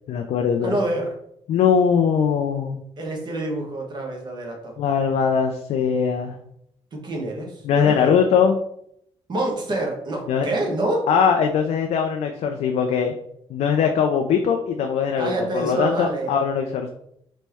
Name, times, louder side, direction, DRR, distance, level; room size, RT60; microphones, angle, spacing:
voice 1, 0.1-0.8 1.5-2.8 4.8-6.4 7.6-8.6 10.3-10.5 11.1-13.1 13.5-16.9, left 7 dB, 85° left, 4 dB, 0.4 m, -21 dB
voice 2, 0.6-1.1 3.0-4.7 6.9-8.4 9.3-11.1 15.2-16.3, right 2 dB, 40° right, 0 dB, 1.2 m, -27 dB
4.2 x 3.1 x 3.4 m, 0.72 s
cardioid pair, 125°, 11 cm